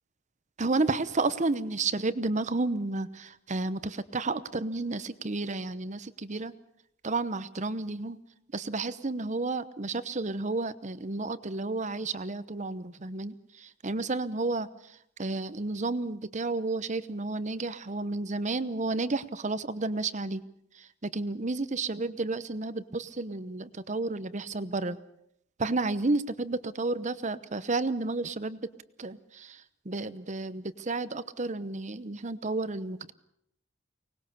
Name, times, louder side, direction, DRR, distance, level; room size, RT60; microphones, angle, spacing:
voice 1, 0.6-6.5 7.0-8.2 8.5-14.7 15.2-20.4 20.7-25.0 25.6-28.7 29.0-33.1, right 3 dB, 40° right, 15 dB, 0.9 m, -31 dB
24.0 x 19.5 x 6.9 m, 0.75 s
head